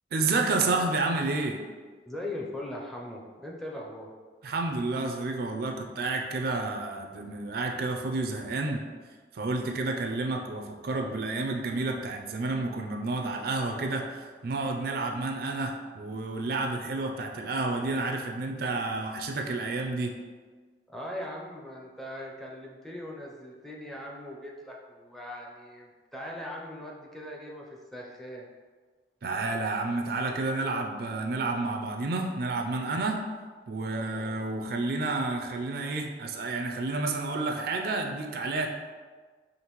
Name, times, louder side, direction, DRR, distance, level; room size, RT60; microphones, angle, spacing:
voice 1, 0.1-1.6 4.4-8.8 9.3-20.1 29.2-33.2 33.7-38.7, right 3 dB, 60° right, 3 dB, 0.4 m, -30 dB
voice 2, 2.1-4.1 20.9-28.4 33.8-34.4, left 1 dB, ahead, -3 dB, 0.5 m, -40 dB
5.1 x 2.5 x 3.0 m, 1.5 s
head